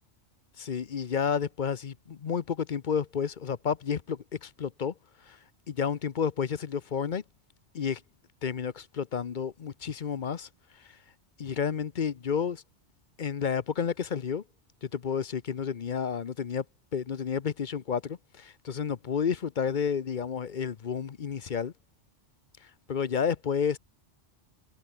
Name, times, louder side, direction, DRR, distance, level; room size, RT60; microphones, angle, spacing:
voice 1, 0.6-4.9 5.3-5.4 5.7-7.2 7.7-8.0 8.4-10.5 11.4-12.6 13.2-14.4 14.8-16.6 16.9-21.7 22.9-23.8, left 7 dB, 45° left, 0.8 m, -31 dB
omnidirectional pair, 1.2 m